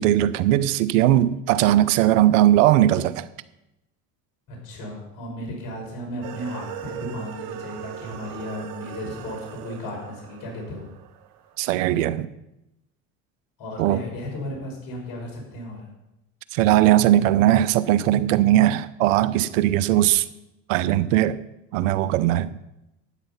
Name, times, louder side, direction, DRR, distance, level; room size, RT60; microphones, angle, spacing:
voice 1, 0.0-3.3 11.6-12.3 13.8-14.0 16.5-20.2 20.7-21.4 21.7-22.6, right 13 dB, 90° right, 0.7 m, -19 dB
voice 2, 4.5-10.9 13.6-15.9, left 1 dB, 60° left, 5.7 m, -35 dB
sound 1, 6.2-11.7, right 10 dB, 60° right, 1.1 m, -39 dB
12.5 x 9.2 x 5.7 m
supercardioid pair, 90°, 37 cm